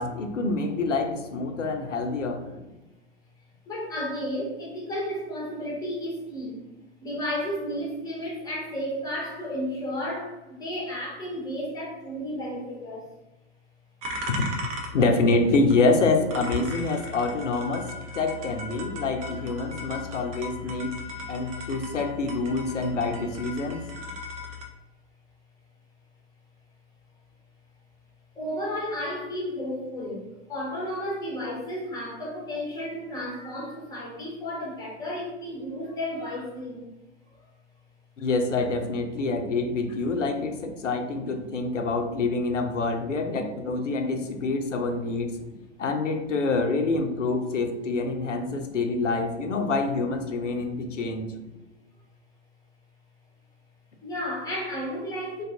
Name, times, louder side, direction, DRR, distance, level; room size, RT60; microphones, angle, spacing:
voice 1, 0.0-2.5 14.2-14.3 14.9-17.9 18.1-21.0 21.3-23.8 38.2-45.4 45.8-51.3, left 3 dB, 85° left, 5 dB, 0.5 m, -26 dB
voice 2, 3.7-6.6 7.0-13.0 19.8-20.0 21.0-21.3 23.8-24.1 28.4-36.9 39.5-39.6 44.1-44.2 48.6-48.8 50.5-50.8 54.0-55.4, equal, 10° left, -3 dB, 0.7 m, -33 dB
sound 1, 14.0-24.7, left 2 dB, 30° right, 0.4 m, -38 dB
2.5 x 2.3 x 2.4 m, 1.0 s
figure-of-eight pair, 100°, 36 cm